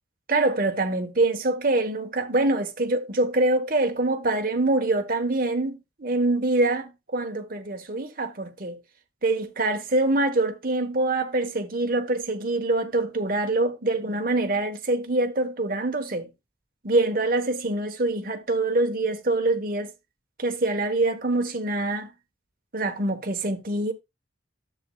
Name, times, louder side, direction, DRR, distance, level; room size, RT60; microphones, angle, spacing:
voice 1, 0.3-8.8 9.2-16.3 16.8-19.9 20.4-22.1 22.7-23.9, right 2 dB, 45° right, 1.2 m, -25 dB
10.5 x 7.5 x 2.3 m
head